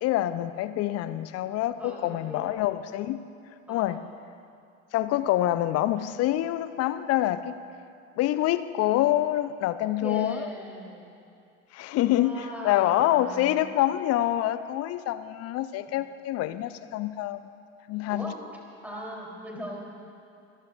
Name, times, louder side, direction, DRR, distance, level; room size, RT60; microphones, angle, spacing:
voice 1, 0.0-3.2 3.7-4.0 4.9-7.5 8.2-10.5 11.7-17.4 17.9-18.3, left 14 dB, 40° left, 13 dB, 0.7 m, -26 dB
voice 2, 1.8-2.6 3.7-4.2 10.0-11.1 12.1-13.6 15.9-16.0 18.1-18.3 18.8-19.8, equal, 5° right, -3 dB, 3.6 m, -39 dB
26.5 x 14.5 x 2.6 m, 2.5 s
figure-of-eight pair, 70°, 41 cm